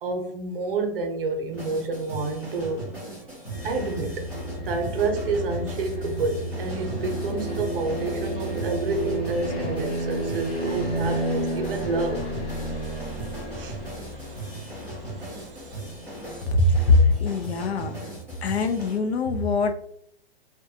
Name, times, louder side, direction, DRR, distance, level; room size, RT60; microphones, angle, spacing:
voice 1, 0.0-2.9 3.6-4.3 4.6-15.8, right 3 dB, 60° right, 0.7 m, -30 dB
sound 1, 1.5-19.0, right 2 dB, 5° left, 0.4 m, -38 dB
sound 2, 3.5-16.9, right 1 dB, 25° left, 0.8 m, -32 dB
voice 2, 16.5-18.0 18.4-19.7, left 3 dB, 85° left, 0.6 m, -21 dB
2.5 x 2.2 x 2.6 m
hypercardioid pair, 160°, 31 cm